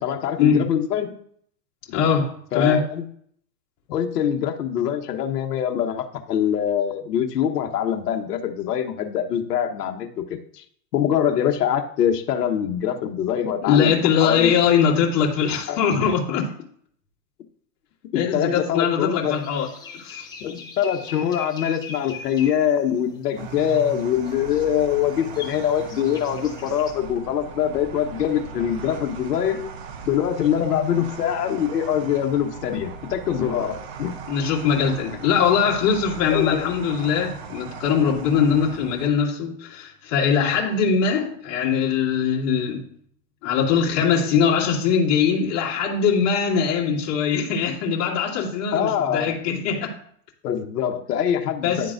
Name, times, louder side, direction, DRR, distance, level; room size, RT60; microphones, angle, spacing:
voice 1, 0.0-1.1 2.5-3.0 3.9-10.6 10.9-14.6 15.7-16.1 18.1-19.4 20.4-29.7 30.1-34.1 36.3-36.7 48.7-49.3 50.4-51.9, left 9 dB, 70° left, 1.1 m, -24 dB
voice 2, 1.9-2.8 13.6-16.4 18.1-20.3 34.3-42.9 43.4-50.0 51.6-51.9, left 7 dB, 30° left, 2.1 m, -21 dB
sound 1, 19.2-26.9, left 5 dB, 10° left, 1.0 m, -42 dB
sound 2, 23.4-39.1, right 6 dB, 40° right, 0.7 m, -38 dB
11.5 x 3.8 x 2.5 m
hypercardioid pair, 150°, 48 cm